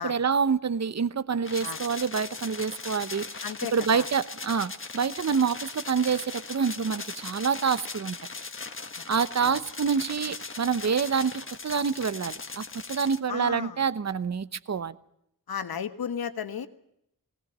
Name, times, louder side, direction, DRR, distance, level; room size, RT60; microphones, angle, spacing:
voice 1, 0.0-3.4 3.7-8.2 9.1-14.9, right 6 dB, 50° right, 0.9 m, -27 dB
sound 1, 1.4-13.2, left 4 dB, 35° left, 1.6 m, -39 dB
voice 2, 3.4-4.1 8.9-9.0 9.4-9.6 13.3-13.8 15.5-16.7, left 7 dB, 85° left, 1.5 m, -34 dB
19.5 x 18.0 x 8.0 m
wide cardioid pair, 110°, 36 cm